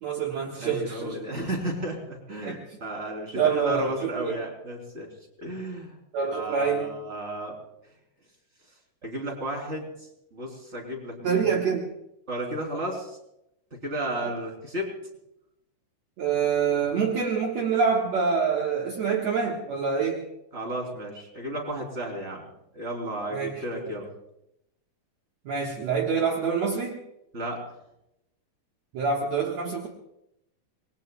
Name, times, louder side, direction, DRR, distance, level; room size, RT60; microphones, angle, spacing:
voice 1, 0.0-1.2 2.4-2.6 3.3-4.3 6.1-6.9 11.2-11.9 16.2-20.2 23.3-23.5 23.8-23.9 25.5-27.0 28.9-29.9, right 6 dB, 65° right, -1 dB, 2.5 m, -26 dB
voice 2, 0.6-5.1 5.4-6.0 6.3-7.5 9.0-9.9 10.3-11.5 12.3-13.1 13.8-14.9 20.5-22.5 22.7-24.1 27.3-27.6, right 1 dB, 20° right, 1 dB, 3.6 m, -33 dB
26.0 x 21.0 x 2.3 m, 0.82 s
omnidirectional pair, 3.6 m